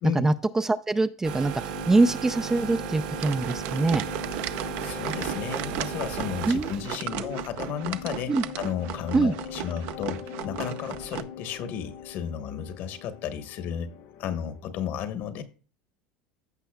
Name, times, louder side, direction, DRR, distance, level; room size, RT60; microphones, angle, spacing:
voice 1, 0.1-4.0 6.5-6.7 7.2-7.4 8.3-8.4 9.1-9.3, right 3 dB, 10° right, 11 dB, 0.4 m, -24 dB
sound 1, 1.2-6.9, right 11 dB, 80° right, 1.1 m, -35 dB
sound 2, 1.4-14.7, left 7 dB, 75° left, 1.4 m, -41 dB
sound 3, 3.1-11.2, right 12 dB, 60° right, 0.6 m, -36 dB
voice 2, 4.8-13.9 14.2-15.4, left 8 dB, 55° left, 10 dB, 1.2 m, -33 dB
15.5 x 5.6 x 2.3 m, 0.38 s
supercardioid pair, 130°, 4 cm